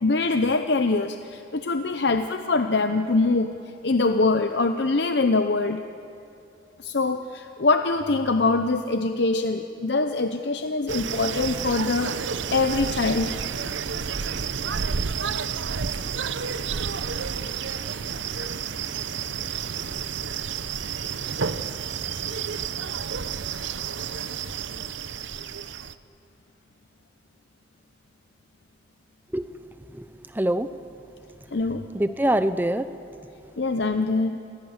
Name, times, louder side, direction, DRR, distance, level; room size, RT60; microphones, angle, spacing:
voice 1, 0.0-3.5 3.8-5.8 6.8-12.1 12.5-13.4 31.5-31.8 33.6-34.4, left 3 dB, 65° left, 7 dB, 0.7 m, -23 dB
sound 1, 10.9-25.9, right 6 dB, 80° right, 0.7 m, -30 dB
voice 2, 29.9-30.7 31.9-32.9 33.4-33.5, right 1 dB, 10° right, 12 dB, 0.6 m, -25 dB
28.5 x 16.0 x 8.1 m, 2.7 s
head